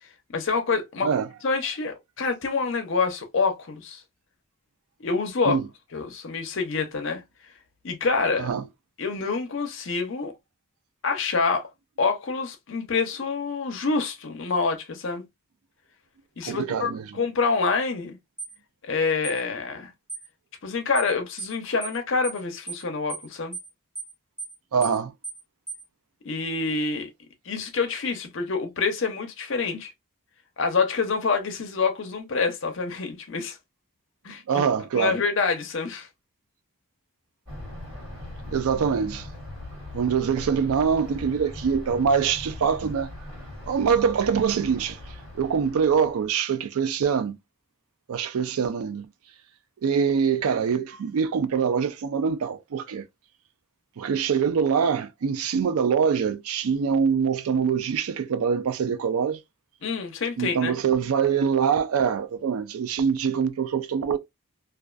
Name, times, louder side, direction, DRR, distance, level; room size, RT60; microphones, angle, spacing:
voice 1, 0.3-1.1 1.4-4.0 5.0-5.6 5.9-7.2 7.8-8.5 9.0-10.3 11.0-11.7 12.0-15.2 16.4-18.2 18.8-19.9 20.6-23.6 26.2-27.1 27.4-29.9 30.6-33.6 34.2-34.6 34.9-36.1 59.8-60.8, left 4 dB, 60° left, 0.6 m, -27 dB
voice 2, 16.4-17.0 24.7-25.1 34.5-35.2 38.5-39.3 39.9-43.1 43.6-45.0 45.3-47.4 48.1-49.1 49.8-53.0 54.0-59.4 60.4-64.2, right 6 dB, 85° right, 0.4 m, -24 dB
sound 1, 18.4-18.5 19.2-19.4 20.1-20.3 20.9-21.1 21.4-21.5 21.8-22.0 22.2-22.4 22.7-22.8 23.1-23.3 23.5-23.7 23.9-24.1 24.4-24.5 24.8-25.0 25.2-25.4 25.7-25.8, right 5 dB, 10° right, 0.5 m, -35 dB
Thunder, 37.4-46.3, left 1 dB, 55° right, 1.4 m, -40 dB
2.4 x 2.2 x 2.3 m
head